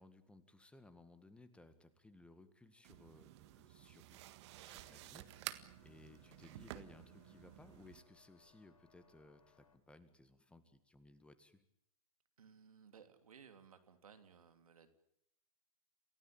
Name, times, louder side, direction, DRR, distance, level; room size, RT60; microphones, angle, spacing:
voice 1, 0.0-4.2 4.6-11.6, left 2 dB, 5° left, 11 dB, 1.9 m, -62 dB
sound 1, 2.8-8.0, right 15 dB, 50° right, 1.7 m, -52 dB
sound 2, 4.6-9.8, left 5 dB, 80° left, 5.1 m, -71 dB
voice 2, 12.4-14.9, right 6 dB, 75° right, 9 dB, 3.0 m, -60 dB
28.0 x 17.0 x 8.8 m, 0.73 s
hypercardioid pair, 115°, 18 cm